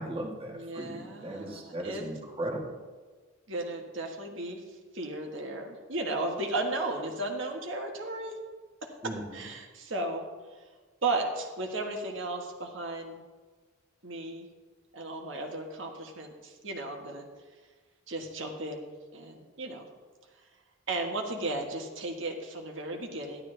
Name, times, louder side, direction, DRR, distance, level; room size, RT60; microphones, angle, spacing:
voice 1, 0.0-2.8 9.0-9.4, right 1 dB, 25° right, 0 dB, 1.6 m, -37 dB
voice 2, 0.5-2.0 3.5-4.6 4.9-8.4 8.8-10.3 11.0-13.2 14.0-14.5 14.9-17.3 18.1-19.9 20.9-23.4, right 2 dB, 65° right, 2 dB, 1.5 m, -35 dB
13.5 x 11.5 x 3.4 m, 1.4 s
head